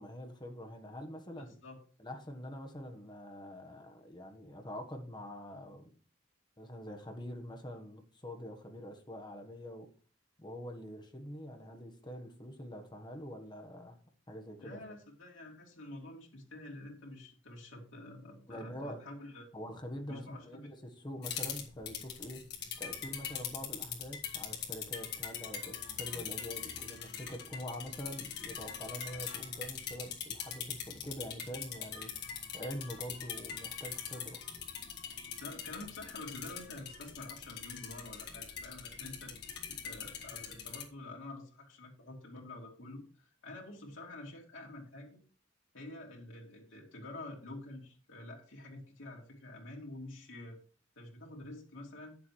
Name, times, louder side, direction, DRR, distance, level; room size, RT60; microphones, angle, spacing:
voice 1, 0.0-1.5 2.0-5.9 6.6-9.9 10.4-14.0 14.3-14.8 18.5-19.0 19.5-22.4 22.8-32.1 32.5-34.4, equal, 25° left, 5 dB, 1.6 m, -45 dB
voice 2, 1.4-1.8 14.6-19.5 20.1-20.7 35.4-39.4 39.7-45.2 45.7-50.6 51.0-52.2, left 2 dB, 85° left, -2 dB, 2.5 m, -48 dB
sound 1, 21.2-40.8, left 8 dB, 60° left, 1.9 m, -42 dB
9.6 x 7.2 x 4.7 m, 0.39 s
head